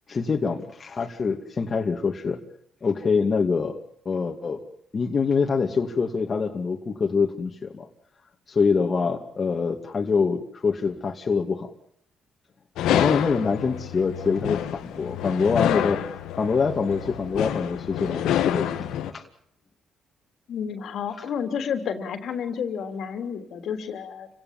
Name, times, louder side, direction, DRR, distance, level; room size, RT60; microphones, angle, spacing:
voice 1, 0.1-2.4 2.8-3.8 4.0-4.6 4.9-7.9 8.5-11.7 12.9-16.0 16.4-19.2, left 5 dB, 40° left, 2 dB, 2.5 m, -25 dB
sound 1, 12.8-19.1, left 11 dB, 90° left, 1.7 m, -27 dB
voice 2, 20.5-24.3, left 7 dB, 70° left, 8 dB, 3.2 m, -30 dB
29.0 x 17.5 x 7.4 m, 0.68 s
cardioid pair, 90°, 0 cm